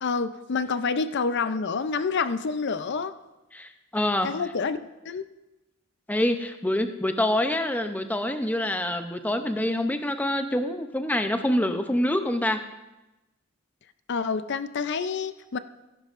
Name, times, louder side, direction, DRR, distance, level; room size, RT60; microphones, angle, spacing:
voice 1, 0.0-3.1 4.2-4.8 5.0-5.2 14.1-15.6, left 5 dB, 55° left, 12 dB, 0.5 m, -28 dB
voice 2, 3.5-4.4 6.1-12.6, left 1 dB, 10° left, 7 dB, 0.6 m, -26 dB
17.0 x 10.5 x 2.5 m, 1.0 s
head